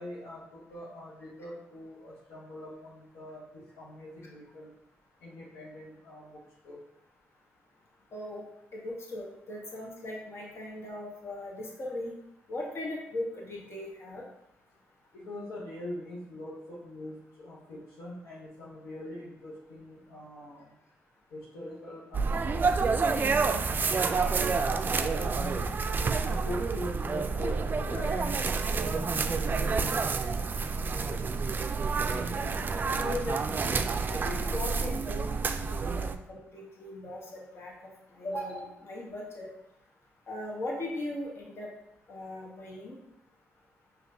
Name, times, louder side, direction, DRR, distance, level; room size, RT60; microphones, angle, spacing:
voice 1, 0.0-4.7 5.2-6.8 15.1-20.8 21.3-22.5 23.7-25.8 26.2-31.3, left 1 dB, 85° left, -6 dB, 0.8 m, -43 dB
voice 2, 8.1-8.4 8.7-12.1 12.5-14.2 32.8-35.3 35.7-39.5 40.3-41.7 42.1-43.0, left 1 dB, 55° left, -2 dB, 1.2 m, -38 dB
sound 1, 22.1-36.2, right 4 dB, 40° right, 0.3 m, -29 dB
5.1 x 2.9 x 2.6 m, 0.81 s
supercardioid pair, 55°, 5 cm